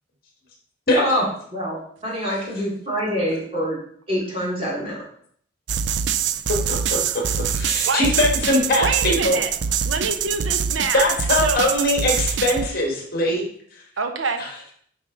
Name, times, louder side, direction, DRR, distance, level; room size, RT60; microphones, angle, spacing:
voice 1, 1.5-3.8 4.1-5.0, equal, 30° right, -4 dB, 2.7 m, -25 dB
sound 1, 5.7-12.7, right 8 dB, 65° right, 0.4 m, -24 dB
voice 2, 6.5-7.0 7.5-9.4 10.9-13.4 14.4-14.5, left 1 dB, 50° left, 0 dB, 1.7 m, -21 dB
voice 3, 8.8-9.5 9.8-11.0 11.4-11.6 14.0-14.5, right 4 dB, 80° right, 7 dB, 0.8 m, -25 dB
7.6 x 5.4 x 3.9 m, 0.62 s
head